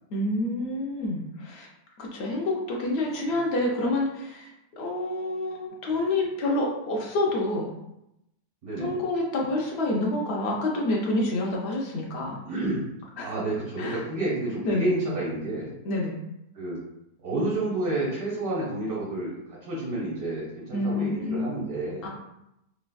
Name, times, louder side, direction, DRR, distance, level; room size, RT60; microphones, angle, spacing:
voice 1, 0.1-1.7 2.0-4.5 4.8-7.7 8.8-12.4 13.2-13.4 13.8-14.0 14.6-14.9 15.8-16.2 20.7-21.6 22.0-22.1, left 2 dB, 75° left, -2 dB, 0.6 m, -28 dB
voice 2, 12.4-12.8 13.2-15.7 16.5-16.8 17.2-19.3 19.7-22.1, right 2 dB, 65° right, -6 dB, 1.5 m, -29 dB
3.2 x 2.3 x 2.2 m, 0.84 s
omnidirectional pair, 1.7 m